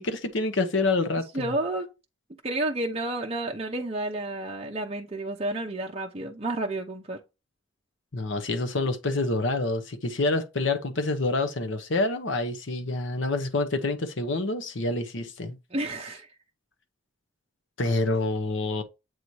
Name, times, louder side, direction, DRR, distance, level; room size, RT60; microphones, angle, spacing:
voice 1, 0.0-1.5 8.1-15.6 17.8-18.8, left 2 dB, 65° left, 0.8 m, -27 dB
voice 2, 1.3-1.9 2.4-7.2 15.7-16.3, right 2 dB, 30° right, 0.6 m, -30 dB
7.8 x 2.7 x 4.6 m
head